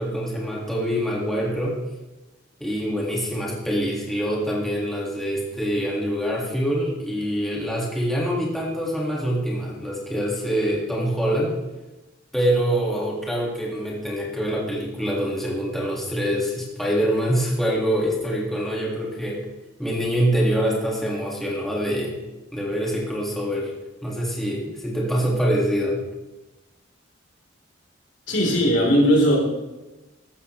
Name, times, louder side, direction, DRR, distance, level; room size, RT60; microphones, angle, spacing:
voice 1, 0.0-1.8 2.6-11.6 12.3-19.4 19.8-22.2 22.5-23.7 24.0-26.0, equal, ahead, -4 dB, 2.0 m, -25 dB
voice 2, 28.3-29.4, equal, 65° left, -1 dB, 3.8 m, -18 dB
14.0 x 13.5 x 3.2 m, 1.1 s
head